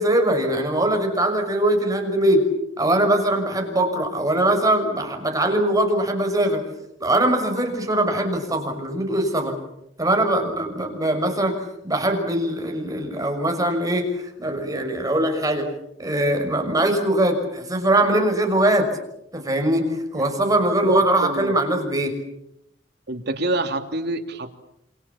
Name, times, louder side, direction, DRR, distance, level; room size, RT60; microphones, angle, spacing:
voice 1, 0.0-2.5 2.8-6.6 7.0-9.6 10.0-15.7 16.0-18.9 19.3-22.2, right 1 dB, 20° right, 4 dB, 6.1 m, -21 dB
voice 2, 20.8-21.6 23.1-24.6, right 1 dB, 60° right, 5 dB, 3.1 m, -26 dB
28.5 x 28.0 x 7.2 m, 0.81 s
head